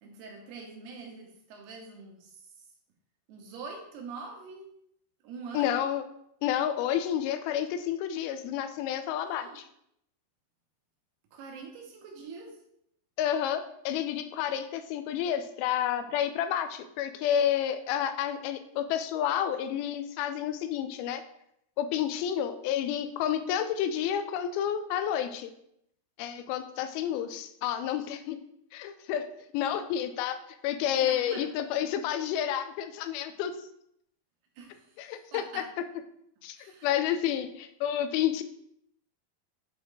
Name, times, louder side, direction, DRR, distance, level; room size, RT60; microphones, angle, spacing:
voice 1, 0.0-2.5 3.3-4.7 5.2-5.9 9.2-9.6 11.3-12.6 31.0-31.5 34.6-35.0 35.3-35.7 36.6-37.0, right 4 dB, 85° right, 1 dB, 3.2 m, -44 dB
voice 2, 5.5-6.0 6.4-9.6 13.2-21.2 21.8-25.5 26.2-28.4 28.7-29.3 29.5-33.5 35.0-35.6 36.4-36.6 36.8-38.4, left 10 dB, 80° left, 10 dB, 2.3 m, -30 dB
8.4 x 3.6 x 3.9 m, 0.74 s
omnidirectional pair, 4.6 m